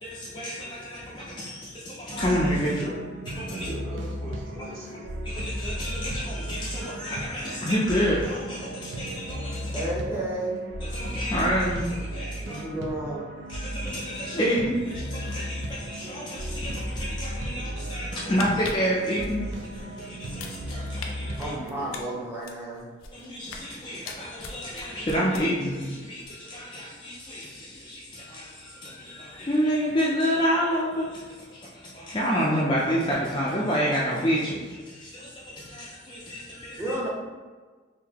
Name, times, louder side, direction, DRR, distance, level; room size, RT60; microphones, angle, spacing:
voice 1, 0.0-2.8 3.3-3.7 5.2-9.8 10.8-12.6 13.5-21.5 23.1-36.9, equal, 25° left, -6 dB, 0.4 m, -29 dB
sound 1, 2.1-22.0, equal, 65° right, 0.5 m, -35 dB
voice 2, 2.6-2.9 3.5-5.0, equal, 90° right, -8 dB, 1.2 m, -38 dB
voice 3, 9.7-10.6 12.4-13.2 21.4-22.9 36.8-37.1, right 1 dB, 15° right, -6 dB, 0.8 m, -32 dB
sound 2, 18.2-19.8 20.2-21.1 21.4-23.7 24.0-25.8 26.1-26.3, left 5 dB, 85° left, 0.4 m, -40 dB
3.8 x 2.6 x 2.8 m, 1.4 s
head